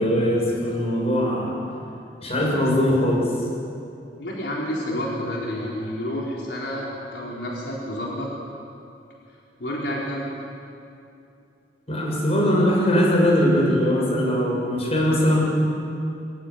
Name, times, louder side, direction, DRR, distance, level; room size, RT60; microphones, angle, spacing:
voice 1, 0.0-1.6 2.2-3.3 11.9-15.4, equal, 35° left, -2 dB, 6.5 m, -21 dB
voice 2, 4.2-8.3 9.6-10.3, equal, 75° left, -4 dB, 4.1 m, -29 dB
24.5 x 15.5 x 9.9 m, 2.6 s
head